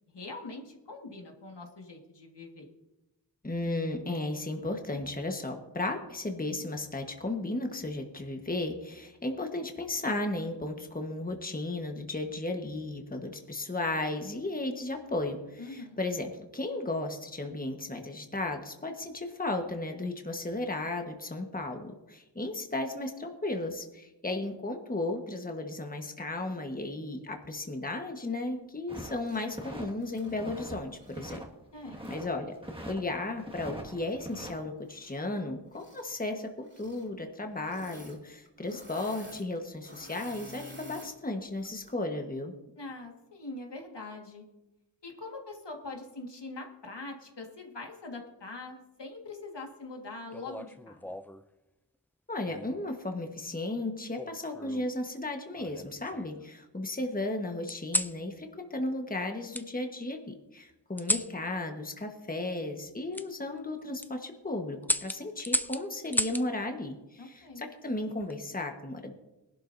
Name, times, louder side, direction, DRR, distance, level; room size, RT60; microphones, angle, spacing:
voice 1, 0.1-2.7 15.6-16.0 31.7-32.1 42.8-44.5 45.0-51.1 67.2-67.7, left 3 dB, 75° left, 2 dB, 1.8 m, -43 dB
voice 2, 3.4-31.4 32.1-32.5 32.9-42.5 52.3-69.1, left 2 dB, 20° left, 4 dB, 1.3 m, -35 dB
sound 1, 28.9-29.9 30.2-30.8 31.1-32.3 32.6-33.0 33.4-34.5, right 1 dB, 15° right, 1.8 m, -42 dB
Engine / Mechanisms, 29.2-29.5 29.9-31.3 32.0-32.2 34.8-35.4 35.7-36.1 36.6-37.1 37.6-38.2 38.4-41.2 41.6-41.9, equal, 30° right, 3.7 m, -51 dB
sound 2, 50.3-51.4 52.5-52.9 54.1-54.9 55.5-56.4 57.7-58.2 59.5-59.7 61.0-61.3 63.1-63.3 63.8-64.1 64.8-66.5 68.0-68.4, left 1 dB, 5° left, 0.4 m, -33 dB
21.0 x 11.5 x 2.6 m, 1.0 s
wide cardioid pair, 55°, 42 cm